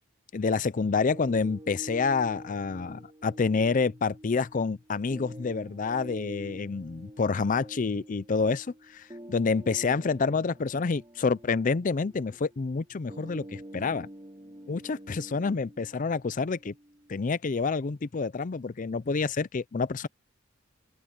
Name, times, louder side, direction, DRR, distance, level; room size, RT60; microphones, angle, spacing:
voice 1, 0.3-14.1 14.7-16.7 17.1-20.1, left 4 dB, 40° left, 0.5 m, -28 dB
sound 1, 1.1-17.1, right 1 dB, 25° right, 4.2 m, -47 dB
open air
head